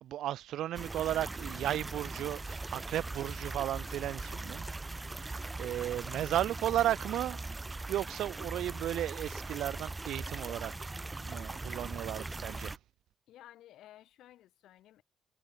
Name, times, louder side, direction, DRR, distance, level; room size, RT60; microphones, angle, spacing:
voice 1, 0.0-4.7 5.1-7.4 7.9-10.9 11.2-12.8, right 12 dB, 80° right, 0.5 m, -34 dB
sound 1, 0.7-12.8, right 2 dB, 20° right, 0.8 m, -40 dB
voice 2, 13.3-15.0, left 13 dB, 80° left, 7.2 m, -56 dB
cardioid pair, 90°, 0 cm